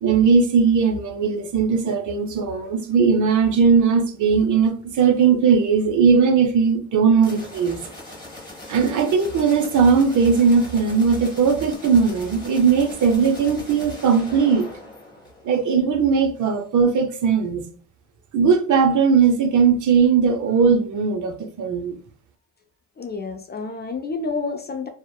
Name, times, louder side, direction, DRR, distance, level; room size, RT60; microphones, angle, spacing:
voice 1, 0.0-7.8 8.7-14.7 15.4-17.6 18.3-22.0, right 5 dB, 50° right, 0.5 m, -18 dB
sound 1, 7.2-15.8, left 2 dB, 10° left, 1.2 m, -40 dB
voice 2, 23.0-24.9, left 4 dB, 25° left, 0.4 m, -29 dB
2.8 x 2.0 x 2.2 m
supercardioid pair, 60°, 39 cm